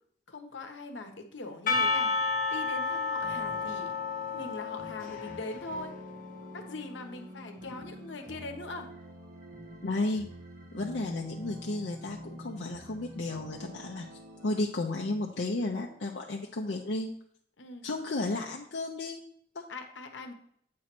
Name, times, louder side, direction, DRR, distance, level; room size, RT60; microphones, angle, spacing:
voice 1, 0.3-2.1 2.5-3.9 4.3-5.9 6.5-8.9 17.6-17.8 19.7-20.3, left 2 dB, 80° left, 5 dB, 1.0 m, -41 dB
Percussion / Church bell, 1.7-6.7, left 4 dB, 45° left, 0.9 m, -32 dB
sound 1, 3.2-14.6, equal, 45° right, 1.4 m, -47 dB
voice 2, 9.8-10.3 10.7-14.1 14.4-17.1 17.8-19.7, left 2 dB, 65° left, 0 dB, 0.6 m, -33 dB
8.5 x 3.1 x 6.0 m, 0.64 s
head